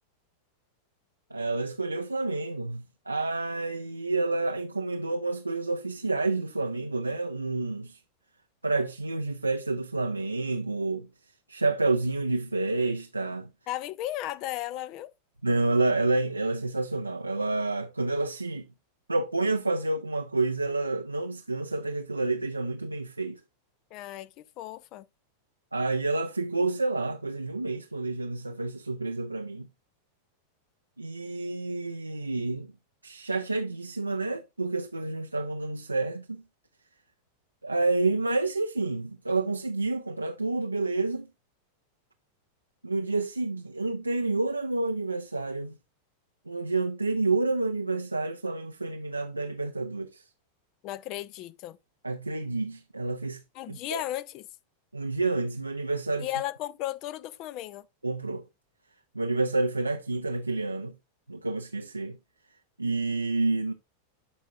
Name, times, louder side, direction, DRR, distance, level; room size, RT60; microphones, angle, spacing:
voice 1, 1.3-8.0 8.6-11.1 11.5-13.5 15.4-18.7 19.1-23.4 25.7-29.7 31.0-32.7 33.0-36.4 37.6-41.3 42.8-45.8 46.5-50.2 52.0-53.4 53.7-54.0 54.9-56.3 58.0-58.4 59.1-60.9 61.3-62.2 62.8-63.7, right 3 dB, 85° right, 0.5 m, -29 dB
voice 2, 13.7-15.1 23.9-25.1 50.8-51.8 53.5-54.5 56.2-57.9, left 14 dB, 40° left, 0.5 m, -35 dB
12.0 x 4.6 x 2.4 m
figure-of-eight pair, 90°, 0 cm